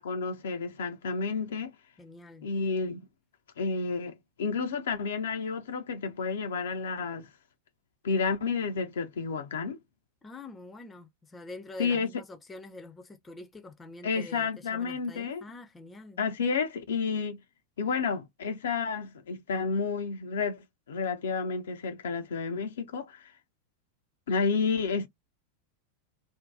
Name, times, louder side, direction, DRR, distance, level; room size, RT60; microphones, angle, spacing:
voice 1, 0.0-1.7 2.4-3.0 3.6-4.1 4.4-7.3 8.0-9.8 11.8-12.1 14.0-15.4 16.2-17.4 17.8-23.2 24.3-25.1, left 5 dB, 60° left, 0.6 m, -30 dB
voice 2, 2.0-2.5 10.2-16.2, left 2 dB, 15° left, 0.7 m, -46 dB
2.7 x 2.2 x 3.5 m
figure-of-eight pair, 90°, 0 cm